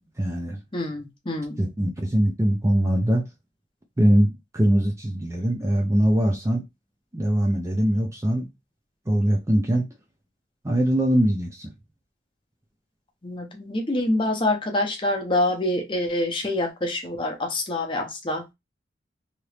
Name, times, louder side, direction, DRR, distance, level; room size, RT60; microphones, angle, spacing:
voice 1, 0.2-0.6 1.6-3.3 4.0-6.6 7.1-8.5 9.1-9.9 10.6-11.7, right 1 dB, 15° right, 0.5 m, -22 dB
voice 2, 0.7-1.7 13.2-18.5, left 1 dB, 25° left, 0.7 m, -26 dB
2.9 x 2.6 x 3.2 m
head